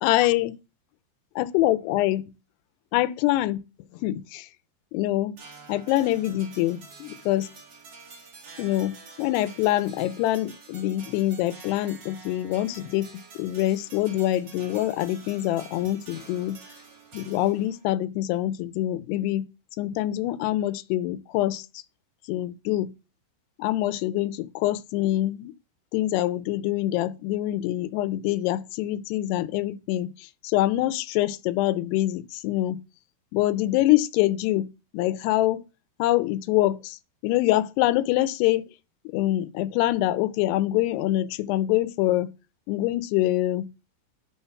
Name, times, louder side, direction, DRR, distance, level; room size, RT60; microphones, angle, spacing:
voice 1, 0.0-0.6 1.4-2.2 2.9-3.6 4.0-4.5 4.9-5.4 5.7-7.5 8.6-13.1 13.4-16.6 17.1-19.5 19.8-21.7 22.3-22.9 23.6-25.5 25.9-32.8 33.3-34.7 34.9-35.6 36.0-38.7 39.1-42.3 42.7-43.7, left 15 dB, 85° left, 2.6 m, -25 dB
sound 1, 5.4-17.8, right 4 dB, 80° right, 1.0 m, -48 dB
10.0 x 3.6 x 5.7 m
omnidirectional pair, 4.8 m